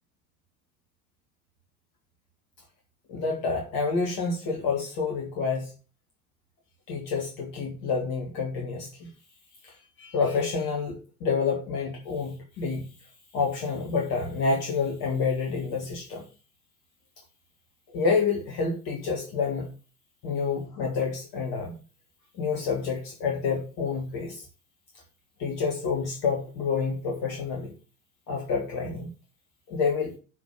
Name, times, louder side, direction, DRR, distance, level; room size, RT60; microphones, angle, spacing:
voice 1, 3.1-5.7 6.9-9.1 9.6-12.9 13.3-16.2 17.9-19.7 20.2-21.8 22.4-24.5 25.4-27.7 28.3-29.1 29.7-30.1, left 5 dB, 45° left, 0 dB, 2.1 m, -28 dB
6.0 x 5.3 x 6.7 m, 0.35 s
figure-of-eight pair, 75°, 43 cm